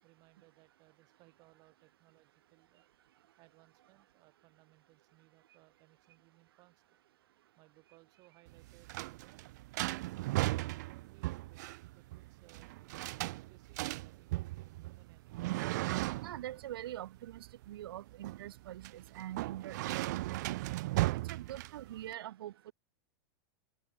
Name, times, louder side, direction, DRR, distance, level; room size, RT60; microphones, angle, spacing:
voice 1, 0.0-2.9 3.4-6.8 7.3-9.4 10.0-13.1 13.4-15.5, right 23 dB, 30° right, 7.0 m, -65 dB
sound 1, 8.5-22.1, right 19 dB, 50° right, 1.2 m, -37 dB
voice 2, 16.2-20.6 21.2-22.7, right 13 dB, 90° right, 1.5 m, -44 dB
supercardioid pair, 175°, 12 cm